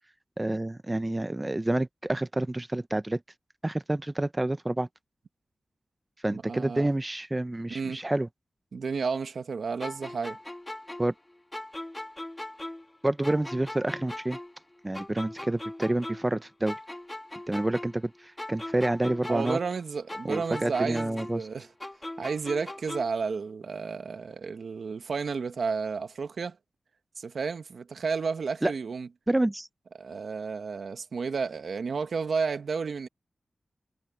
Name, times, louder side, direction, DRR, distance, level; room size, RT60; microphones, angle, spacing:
voice 1, 0.4-3.2 3.6-4.9 6.2-8.3 11.0-11.1 13.0-14.4 14.8-16.8 17.5-19.6 20.2-21.4 28.6-28.7 29.3-29.7, right 1 dB, 25° right, 0.8 m, -28 dB
voice 2, 6.3-6.9 7.7-8.0 8.7-10.4 19.3-21.7 22.2-26.6 27.2-29.1 30.0-33.1, right 5 dB, 75° right, 1.5 m, -32 dB
sound 1, 9.8-13.0 13.2-16.4 16.7-19.8 20.1-23.2, left 1 dB, 20° left, 1.6 m, -40 dB
cardioid pair, 45°, 0 cm